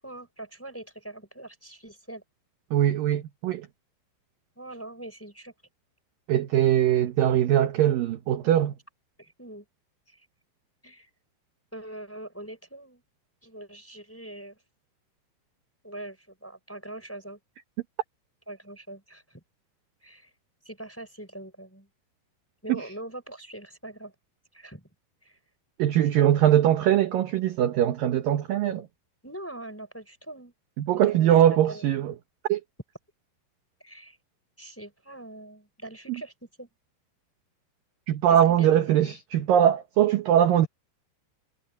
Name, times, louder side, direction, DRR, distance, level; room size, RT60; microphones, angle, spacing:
voice 1, 0.0-2.2 4.6-5.5 9.2-9.6 10.1-10.3 10.8-11.1 11.7-13.0 13.4-14.6 15.8-17.4 18.5-19.4 20.0-20.3 20.6-21.9 22.6-24.1 24.5-24.9 25.2-25.4 29.2-30.5 31.1-31.8 33.8-34.2 34.6-36.3 36.6-36.7 38.3-38.8 39.0-39.1, right 1 dB, 5° left, 3.7 m, -42 dB
voice 2, 2.7-3.7 6.3-8.7 22.7-22.8 25.8-28.9 30.8-32.1 32.5-32.6 36.1-36.2 38.1-40.7, right 11 dB, 70° right, 2.3 m, -21 dB
omnidirectional pair, 5.2 m